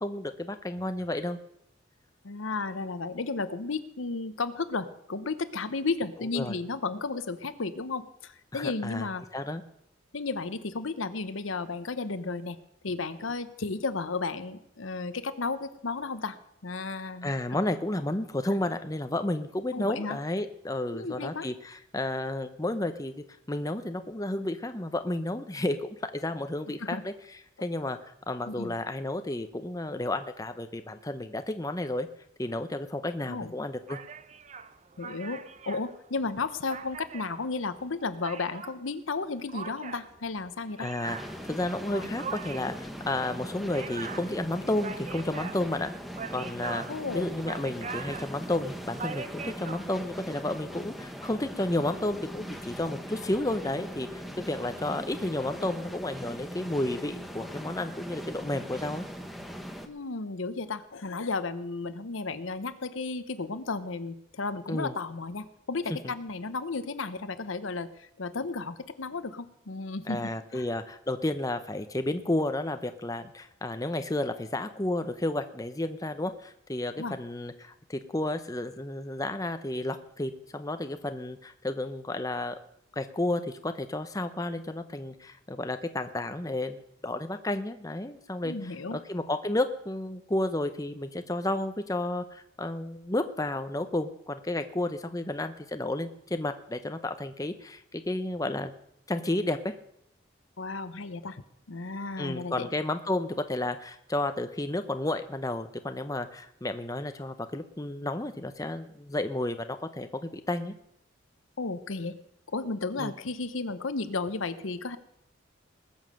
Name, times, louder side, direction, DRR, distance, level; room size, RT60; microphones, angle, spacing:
voice 1, 0.0-1.4 6.3-6.5 8.5-9.1 9.3-9.6 17.2-23.1 23.5-27.1 27.6-32.1 32.4-34.0 40.8-41.2 41.4-45.9 46.3-46.8 47.1-59.0 64.7-64.9 65.9-66.1 70.1-82.5 83.0-98.7 99.1-99.8 102.2-110.7 113.0-113.1, left 1 dB, 15° left, 9 dB, 0.7 m, -32 dB
voice 2, 2.2-9.2 10.1-12.6 12.8-17.4 19.7-20.2 20.9-21.5 26.8-27.0 28.5-28.7 33.3-33.5 35.0-40.9 41.9-42.1 46.9-47.3 59.9-70.2 70.5-70.7 76.9-77.2 88.4-89.0 100.6-101.4 101.7-102.7 111.6-112.2 112.5-115.0, left 3 dB, 80° left, 12 dB, 0.9 m, -33 dB
sound 1, 33.9-38.8 39.5-49.8, right 5 dB, 35° right, 0.7 m, -42 dB
sound 2, 41.0-59.9, equal, ahead, 1.0 m, -40 dB
20.0 x 7.3 x 6.4 m, 0.77 s
head